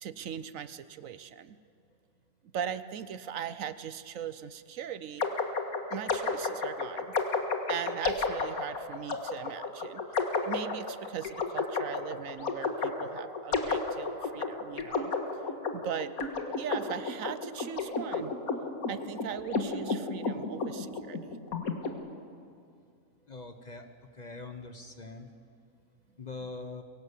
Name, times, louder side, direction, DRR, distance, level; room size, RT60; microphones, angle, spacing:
voice 1, 0.0-1.6 2.5-5.3 5.9-7.1 7.7-15.1 15.7-16.1 16.6-18.3 18.9-21.4, right 8 dB, 70° right, 14 dB, 1.1 m, -39 dB
sound 1, 5.2-21.9, left 4 dB, 80° left, 2.1 m, -32 dB
voice 2, 23.3-23.9 24.1-25.3 26.2-26.8, left 3 dB, 30° left, 7 dB, 1.1 m, -42 dB
23.0 x 17.0 x 8.2 m, 2.3 s
omnidirectional pair, 1.5 m